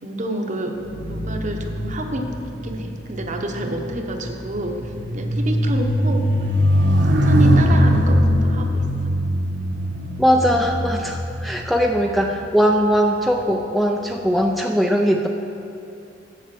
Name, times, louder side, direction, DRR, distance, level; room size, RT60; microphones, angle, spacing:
voice 1, 0.0-0.8 1.1-2.3 2.6-6.5 7.0-8.9, right 1 dB, 40° right, 4 dB, 0.8 m, -28 dB
sound 1, 0.8-12.4 13.2-13.4, equal, 75° right, 1.2 m, -21 dB
voice 2, 10.2-15.3, equal, ahead, 2 dB, 0.4 m, -20 dB
7.9 x 7.5 x 6.0 m, 2.9 s
head